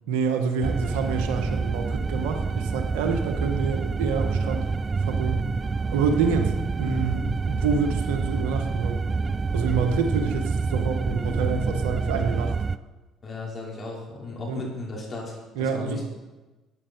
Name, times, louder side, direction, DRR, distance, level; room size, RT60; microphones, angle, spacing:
voice 1, 0.1-4.7 5.0-5.5 5.9-9.0 9.5-12.5 14.5-14.6 15.5-16.0, right 5 dB, 80° right, 5 dB, 1.3 m, -27 dB
sound 1, 0.6-12.8, right 4 dB, 35° right, 0.4 m, -27 dB
voice 2, 13.2-16.1, left 2 dB, 40° left, -2 dB, 4.9 m, -35 dB
13.5 x 9.0 x 4.6 m, 1.2 s
hypercardioid pair, 65°, 0 cm